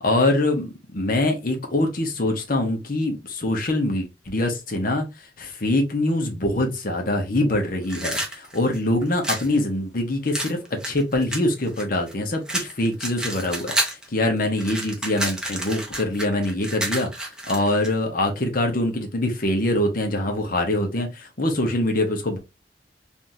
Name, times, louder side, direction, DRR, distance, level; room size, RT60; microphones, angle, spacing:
voice 1, 0.0-5.1 5.4-17.1 17.5-22.4, left 1 dB, 50° left, 0.9 m, -24 dB
sound 1, 7.8-9.5 10.3-12.1 12.5-14.1 14.4-17.9, right 1 dB, 5° right, 0.7 m, -29 dB
3.4 x 2.7 x 2.6 m
head